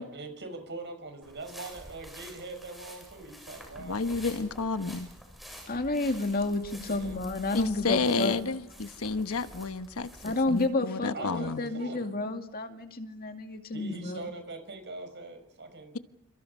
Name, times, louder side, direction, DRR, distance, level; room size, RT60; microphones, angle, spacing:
voice 1, 0.0-4.5 6.7-7.2 11.1-12.0 13.7-16.0, right 3 dB, 55° right, 5.9 m, -42 dB
sound 1, 1.2-10.7, equal, ahead, 7.8 m, -48 dB
voice 2, 3.8-5.1 7.5-11.7, left 3 dB, 70° left, 1.2 m, -31 dB
voice 3, 5.7-8.4 10.2-14.3, left 2 dB, 45° left, 2.2 m, -30 dB
29.5 x 27.5 x 5.5 m
head